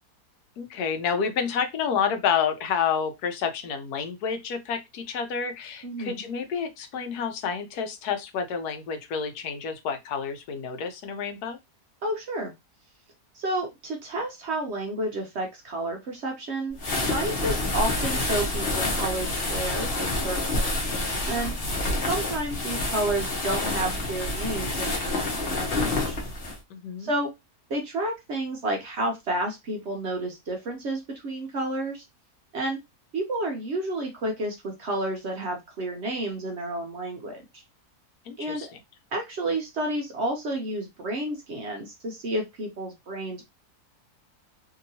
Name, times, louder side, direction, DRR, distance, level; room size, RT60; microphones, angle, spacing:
voice 1, 0.6-11.6 26.7-27.1 38.3-38.8, left 6 dB, 80° left, 1.2 m, -29 dB
voice 2, 5.8-6.2 12.0-12.5 13.3-16.8 17.1-20.9 21.3-21.5 22.1-26.2 27.0-27.3 27.7-32.0 32.5-32.8 33.1-37.6 38.4-38.7 39.1-43.4, right 1 dB, 60° right, 0.8 m, -31 dB
sound 1, 16.8-26.6, left 2 dB, 45° left, 0.9 m, -28 dB
2.9 x 2.8 x 2.6 m
omnidirectional pair, 1.6 m